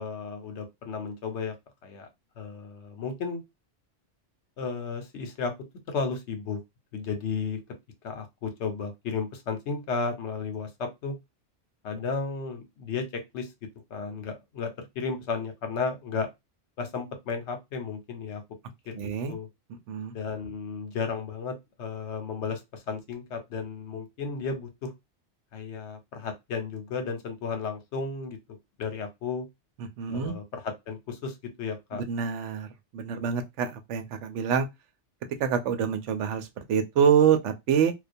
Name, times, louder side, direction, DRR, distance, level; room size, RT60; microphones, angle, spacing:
voice 1, 0.0-1.5 1.8-2.1 2.4-3.4 4.6-5.5 5.9-6.6 6.9-7.6 8.0-11.1 11.8-13.5 13.9-16.3 16.8-18.4 18.9-19.5 20.1-24.9 25.5-29.5 30.1-32.0, left 5 dB, 75° left, 1.0 m, -34 dB
voice 2, 19.0-19.3 19.9-20.1 30.0-30.3 31.9-32.7 32.9-34.7 35.4-37.9, right 7 dB, 85° right, 0.9 m, -26 dB
2.2 x 2.2 x 2.5 m
omnidirectional pair, 1.2 m